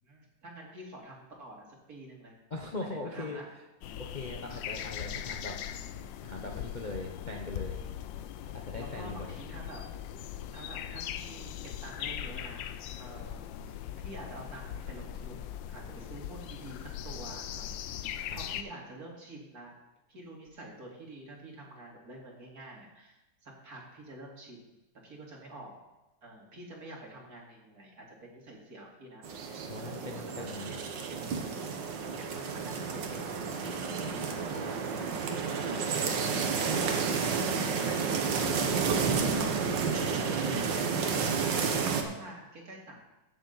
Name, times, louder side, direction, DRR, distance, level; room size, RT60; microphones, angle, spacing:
voice 1, 0.0-2.3 2.8-3.5 5.1-5.3 7.7-7.9 8.8-9.9 10.5-12.6 13.0-18.1 18.3-19.7 20.1-23.2 23.4-24.7 25.0-25.8 26.2-30.1 30.4-30.8 31.1-31.2 32.1-34.8 35.3-38.9 40.3-43.0, right 1 dB, 55° right, -2 dB, 2.9 m, -48 dB
voice 2, 2.5-3.4 4.0-5.6 6.2-7.8 8.5-9.4 18.2-18.5 29.7-30.8 39.9-40.7, left 2 dB, 35° left, 0 dB, 0.8 m, -40 dB
sound 1, 3.8-18.6, left 10 dB, 85° left, 1.3 m, -40 dB
sound 2, 29.2-42.0, right 5 dB, 75° right, 1.8 m, -31 dB
15.5 x 7.0 x 4.0 m, 1.0 s
omnidirectional pair, 2.0 m